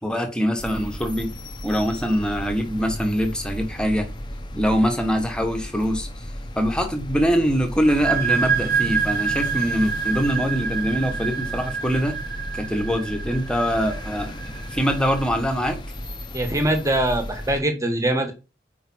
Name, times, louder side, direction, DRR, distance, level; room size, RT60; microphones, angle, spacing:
voice 1, 0.0-1.4 1.6-4.1 4.5-6.3 6.5-12.2 12.5-15.8, equal, 5° left, 1.2 m, -23 dB
sound 1, 0.6-17.6, equal, 25° left, 0.9 m, -35 dB
sound 2, 7.8-15.3, right 6 dB, 55° right, 1.0 m, -27 dB
voice 2, 16.3-18.3, right 1 dB, 15° right, 1.4 m, -22 dB
5.1 x 4.7 x 6.1 m
head